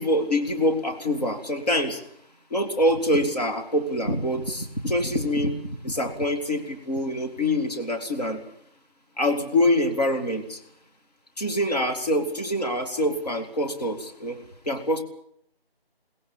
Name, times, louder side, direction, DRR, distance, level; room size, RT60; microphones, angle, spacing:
voice 1, 0.0-2.0 2.5-8.4 9.2-10.6 11.4-14.4 14.7-15.0, left 1 dB, 40° left, 5 dB, 2.9 m, -25 dB
22.0 x 20.0 x 8.9 m, 0.68 s
figure-of-eight pair, 175°, 30 cm